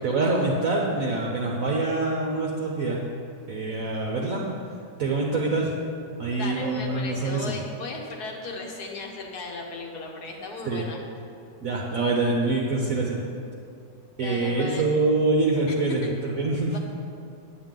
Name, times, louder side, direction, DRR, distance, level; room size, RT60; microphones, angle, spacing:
voice 1, 0.0-3.0 3.5-4.5 5.0-5.7 6.2-7.6 10.6-10.8 11.6-13.2 14.2-16.7, right 3 dB, 55° right, -2 dB, 1.1 m, -25 dB
voice 2, 6.3-11.0 14.2-14.9 15.7-16.1 16.7-16.8, left 3 dB, 60° left, 1 dB, 1.5 m, -36 dB
9.0 x 8.8 x 3.8 m, 2.4 s
omnidirectional pair, 2.0 m